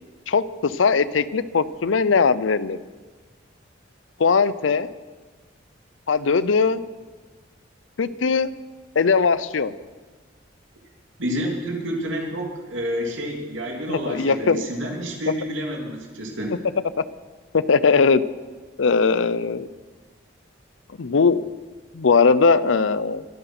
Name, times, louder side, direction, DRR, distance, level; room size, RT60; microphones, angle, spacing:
voice 1, 0.3-2.8 4.2-4.9 6.1-6.8 8.0-8.5 9.0-9.7 13.9-14.6 17.0-17.1 17.5-18.2 18.8-19.7 21.0-21.4 21.9-23.3, left 5 dB, 80° left, 17 dB, 0.6 m, -19 dB
voice 2, 11.2-16.6, equal, 80° right, 1 dB, 2.5 m, -29 dB
23.0 x 7.9 x 6.0 m, 1.4 s
head